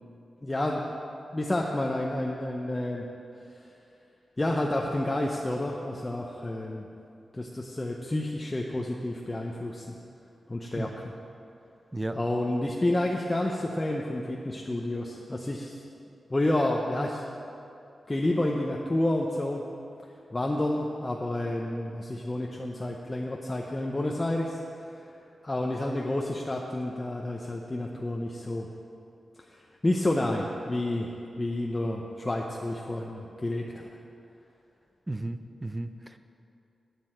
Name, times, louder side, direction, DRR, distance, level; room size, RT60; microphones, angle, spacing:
voice 1, 0.4-1.0 1.3-3.0 4.4-6.9 7.3-10.0 10.5-10.9 12.1-15.8 16.3-17.2 18.1-19.6 20.3-25.0 25.4-28.7 29.5-31.1 31.4-33.8, left 1 dB, 20° left, -1 dB, 0.7 m, -29 dB
voice 2, 35.1-36.2, right 2 dB, 15° right, 9 dB, 0.5 m, -34 dB
8.5 x 7.5 x 8.9 m, 2.6 s
wide cardioid pair, 125°, 0 cm